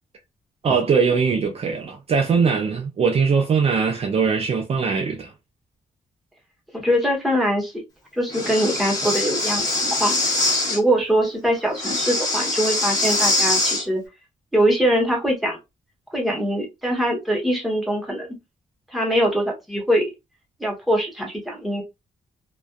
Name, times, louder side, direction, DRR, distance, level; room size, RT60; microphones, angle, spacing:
voice 1, 0.6-5.3, right 5 dB, 45° right, 0.5 m, -21 dB
voice 2, 6.7-7.8 8.2-10.4 10.7-14.0 14.5-15.6 16.1-18.3 18.9-20.1 20.6-21.8, equal, ahead, 0.9 m, -22 dB
Breathing, 8.3-10.8 11.7-13.8, left 2 dB, 25° left, 1.0 m, -23 dB
2.5 x 2.3 x 2.2 m
wide cardioid pair, 145°, 15 cm